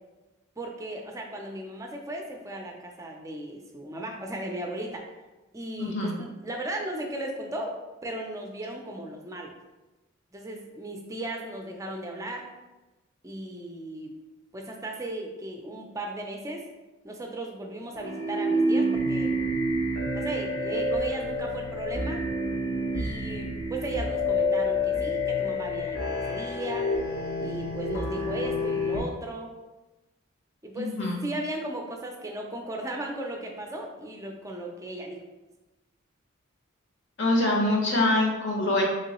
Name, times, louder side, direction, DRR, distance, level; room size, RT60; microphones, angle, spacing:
voice 1, 0.6-5.1 5.5-9.5 10.3-12.5 13.2-14.1 14.5-16.6 17.0-19.3 20.1-22.2 22.9-26.9 27.4-29.5 30.6-31.0 31.2-35.2, right 1 dB, 15° right, 2 dB, 0.4 m, -36 dB
voice 2, 5.8-6.1 30.8-31.2 37.2-38.8, left 2 dB, 60° left, -1 dB, 0.8 m, -24 dB
sound 1, 17.9-29.0, left 1 dB, 90° left, 1.0 m, -28 dB
3.7 x 3.0 x 2.9 m, 1.1 s
head